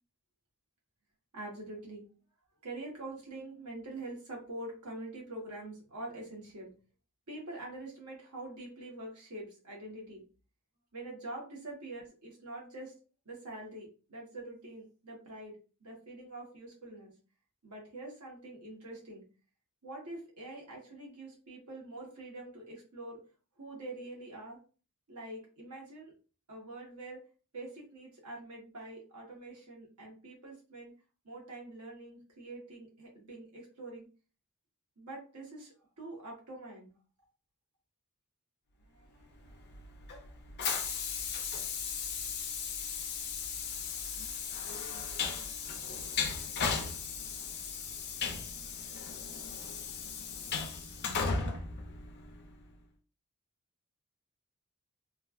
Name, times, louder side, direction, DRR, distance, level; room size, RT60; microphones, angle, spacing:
voice 1, 1.3-2.1 2.6-6.7 7.3-10.2 10.9-12.9 13.2-17.1 17.6-19.3 19.8-23.2 23.6-24.6 25.1-26.1 26.5-27.2 27.5-30.9 31.2-34.1 35.0-36.9 38.9-39.6, right 2 dB, 90° right, -2 dB, 1.2 m, -45 dB
Train, 39.4-52.6, left 5 dB, 45° left, 0.5 m, -36 dB
3.1 x 2.3 x 2.4 m, 0.36 s
head